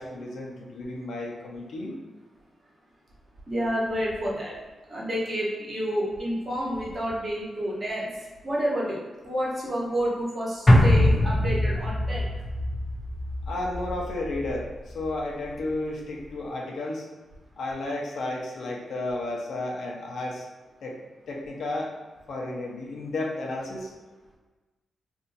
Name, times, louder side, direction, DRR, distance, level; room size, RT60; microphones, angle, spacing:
voice 1, 0.0-2.0 13.5-17.1 17.6-20.5 20.8-21.0 21.3-21.9 22.3-23.9, left 2 dB, 70° left, -2 dB, 0.7 m, -32 dB
voice 2, 3.5-4.5 4.9-8.1 8.4-9.0 9.2-12.3, equal, 35° right, -6 dB, 1.1 m, -29 dB
sound 1, 10.7-15.1 15.4-15.5, left 1 dB, 20° left, 0.4 m, -23 dB
2.7 x 2.4 x 4.0 m, 1.3 s
wide cardioid pair, 125°, 0 cm